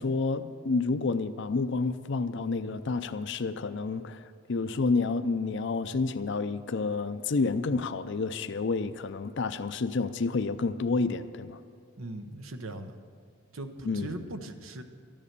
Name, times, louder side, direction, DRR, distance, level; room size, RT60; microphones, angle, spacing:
voice 1, 0.0-11.6 13.9-14.2, left 3 dB, 60° left, 10 dB, 0.5 m, -29 dB
voice 2, 12.0-12.9 13.5-14.8, right 2 dB, 90° right, 7 dB, 1.0 m, -39 dB
14.0 x 11.0 x 6.8 m, 2.3 s
head